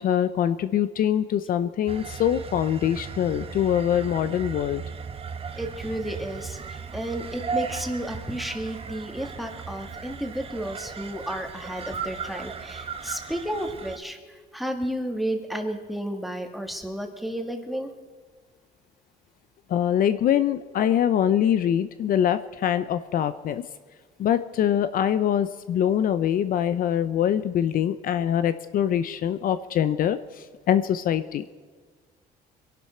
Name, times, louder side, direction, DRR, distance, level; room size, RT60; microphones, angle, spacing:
voice 1, 0.0-4.8 19.7-23.6 24.2-31.4, left 10 dB, 55° left, 12 dB, 0.6 m, -24 dB
sound 1, 1.9-14.0, right 6 dB, 35° right, 1.1 m, -36 dB
voice 2, 5.6-17.9, right 1 dB, ahead, 4 dB, 1.8 m, -32 dB
24.0 x 11.5 x 4.4 m, 1.5 s
cardioid pair, 110°, 17 cm